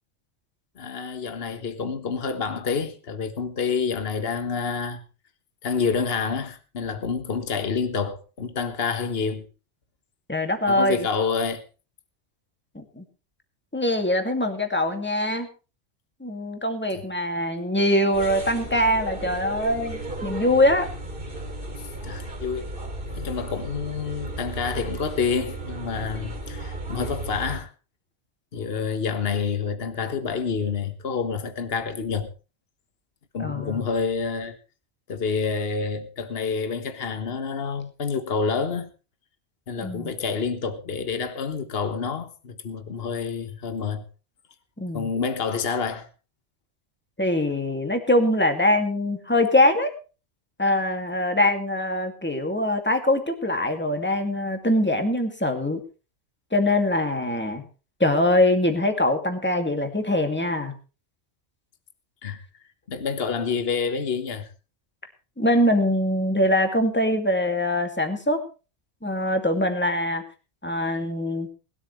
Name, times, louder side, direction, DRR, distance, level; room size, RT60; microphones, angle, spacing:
voice 1, 0.8-5.0 5.6-9.5 10.7-11.6 22.0-22.7 23.1-27.7 28.5-32.3 33.3-34.6 35.1-38.9 39.7-44.0 44.9-46.1 62.2-62.4 62.9-64.5, left 5 dB, 55° left, 1.6 m, -28 dB
voice 2, 10.3-11.0 12.7-13.0 13.7-15.5 16.2-20.9 33.4-33.8 39.8-40.1 44.8-45.1 47.2-49.9 50.6-55.8 56.5-57.6 58.0-60.7 65.4-68.4 69.0-70.2 70.6-71.5, left 1 dB, 10° left, 2.4 m, -23 dB
sound 1, 18.1-27.6, right 2 dB, 50° right, 2.9 m, -35 dB
21.0 x 12.5 x 3.2 m
omnidirectional pair, 1.2 m